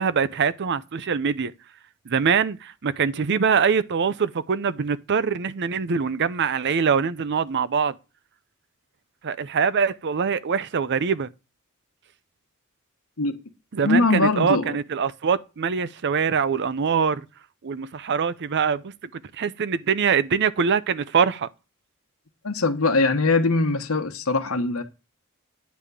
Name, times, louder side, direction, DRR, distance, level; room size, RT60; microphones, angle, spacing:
voice 1, 0.0-1.5 2.1-7.9 9.2-11.3 13.7-17.2 17.6-21.5, right 6 dB, 55° right, 0.5 m, -23 dB
voice 2, 13.8-14.6 22.4-24.8, left 3 dB, 70° left, 1.1 m, -21 dB
9.4 x 3.6 x 6.8 m
head